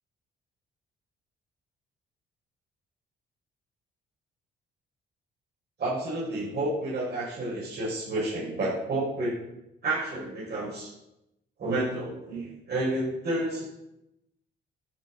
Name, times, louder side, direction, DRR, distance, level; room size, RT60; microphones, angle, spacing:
voice 1, 5.8-9.4 9.8-10.9 11.6-13.7, right 2 dB, 55° right, -8 dB, 6.4 m, -30 dB
12.5 x 7.1 x 7.9 m, 0.87 s
cardioid pair, 90°, 20 cm